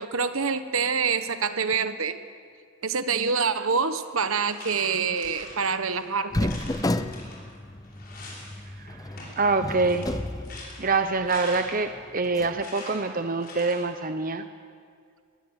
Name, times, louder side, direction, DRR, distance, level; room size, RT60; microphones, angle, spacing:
voice 1, 0.0-2.2 2.8-6.5, right 5 dB, 70° right, 11 dB, 1.2 m, -26 dB
sound 1, 3.9-4.0 4.5-6.0 6.4-8.6 8.9-12.0 12.6-13.9, left 2 dB, 45° left, 6.0 m, -44 dB
sound 2, 6.3-11.2 11.6-11.7 12.2-12.6, left 1 dB, 15° left, 0.6 m, -32 dB
voice 2, 9.4-10.0 10.8-14.4, right 3 dB, 40° right, 8 dB, 0.8 m, -25 dB
20.5 x 20.0 x 8.1 m, 2.2 s
head